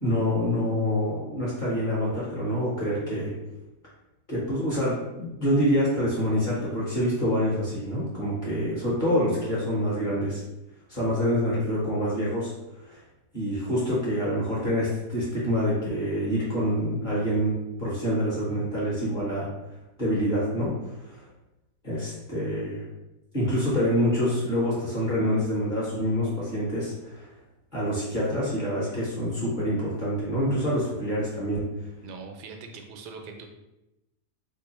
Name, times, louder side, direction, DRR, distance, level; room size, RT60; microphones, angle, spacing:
voice 1, 0.0-3.3 4.3-10.4 10.9-12.5 12.8-13.0 13.3-19.5 20.0-21.2 21.8-22.8 23.3-27.3 27.7-31.6, equal, 35° left, -7 dB, 1.1 m, -26 dB
voice 2, 32.0-33.5, right 4 dB, 80° right, 3 dB, 1.1 m, -41 dB
3.0 x 2.4 x 4.1 m, 0.95 s
omnidirectional pair, 1.8 m